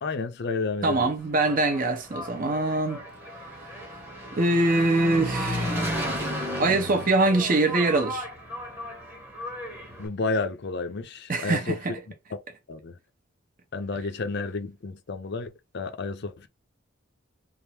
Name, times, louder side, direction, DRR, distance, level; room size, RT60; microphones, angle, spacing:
voice 1, 0.0-1.1 10.0-11.8 12.3-12.4 12.7-12.9 13.7-16.5, left 3 dB, 55° left, 0.5 m, -31 dB
voice 2, 0.8-3.0 4.3-5.8 6.6-8.3 11.3-12.0, right 2 dB, 45° right, 0.8 m, -23 dB
Engine, 1.2-10.1, equal, 10° right, 1.0 m, -34 dB
3.5 x 2.0 x 4.3 m
head